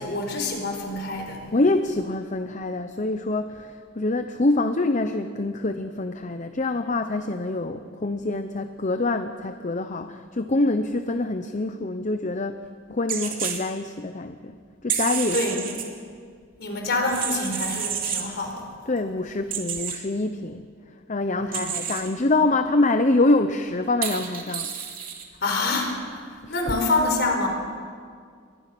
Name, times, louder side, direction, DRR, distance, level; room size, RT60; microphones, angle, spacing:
voice 1, 0.0-1.4 15.3-15.7 16.6-18.6 21.4-21.8 25.4-26.0 26.5-27.5, left 2 dB, 55° left, 3 dB, 4.6 m, -26 dB
voice 2, 1.5-15.6 18.9-20.7 21.1-24.7 26.4-26.5, left 2 dB, 40° left, 8 dB, 0.8 m, -25 dB
sound 1, 13.1-13.6 14.9-15.8 17.0-18.3 19.5-20.0 21.5-22.1 24.0-25.2, right 8 dB, 45° right, 3.0 m, -29 dB
28.5 x 23.0 x 6.1 m, 2.1 s
head